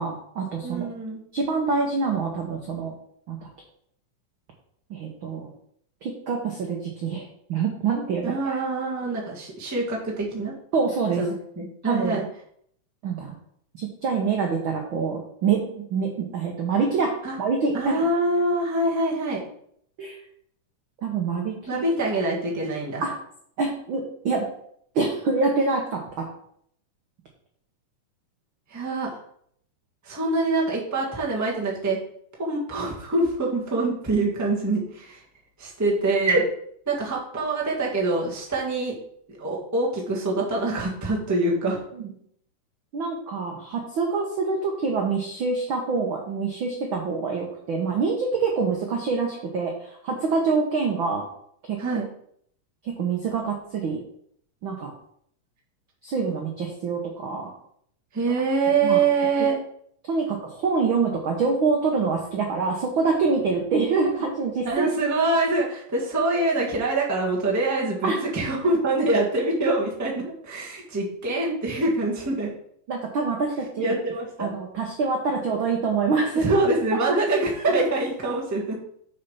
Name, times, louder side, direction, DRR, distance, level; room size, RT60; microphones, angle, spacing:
voice 1, 0.0-0.9 1.3-2.9 3.3-3.4 4.9-5.5 6.0-8.6 10.7-11.2 11.8-12.2 13.0-13.3 13.7-18.0 20.0-20.2 21.0-21.8 23.0-23.1 23.6-24.5 24.9-26.2 41.9-42.1 42.9-51.3 51.7-51.8 52.8-54.0 54.6-54.9 56.0-57.5 58.8-59.0 59.4-59.5 60.0-64.9 68.0-68.2 72.9-73.9 74.4-76.5, right 4 dB, 65° right, 1 dB, 1.2 m, -26 dB
voice 2, 0.6-1.2 8.2-10.5 11.2-12.2 17.2-17.4 17.7-19.4 21.7-23.0 28.7-29.2 30.0-32.0 32.4-35.2 35.6-36.4 36.9-39.0 39.4-41.8 51.8-52.1 58.1-59.6 64.6-72.5 73.8-74.5 76.4-78.8, right 2 dB, 10° right, -3 dB, 0.9 m, -25 dB
6.6 x 5.7 x 5.6 m, 0.67 s
omnidirectional pair, 3.7 m